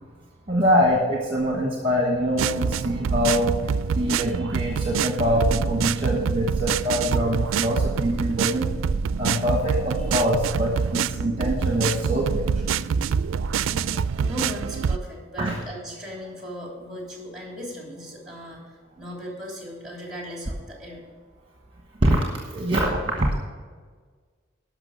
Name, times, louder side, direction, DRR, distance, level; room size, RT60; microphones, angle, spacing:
voice 1, 0.5-3.5 3.9-8.7 9.2-12.5 15.4-15.6 22.0-22.2 22.5-23.3, equal, 25° right, 0 dB, 1.3 m, -24 dB
sound 1, 2.4-15.0, right 6 dB, 85° right, 0.3 m, -26 dB
voice 2, 12.7-13.3 13.6-21.0, equal, 5° right, -1 dB, 3.3 m, -37 dB
12.0 x 6.1 x 6.7 m, 1.5 s
head